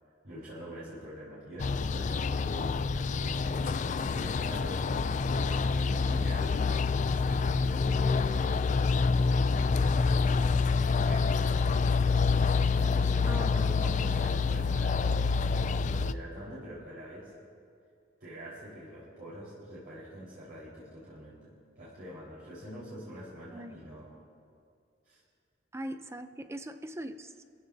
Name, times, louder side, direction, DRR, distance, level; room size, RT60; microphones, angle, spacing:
voice 1, 0.2-3.8 4.1-4.9 5.4-8.7 9.3-10.1 11.1-11.8 12.8-15.6 15.9-17.3 18.2-24.2 25.0-25.2, equal, 55° right, -9 dB, 4.7 m, -44 dB
sound 1, 1.6-16.1, left 4 dB, 40° left, 0.4 m, -27 dB
voice 2, 13.3-13.8 23.5-23.7 25.7-27.4, right 1 dB, 15° right, 9 dB, 0.6 m, -40 dB
29.5 x 16.0 x 2.8 m, 2.3 s
head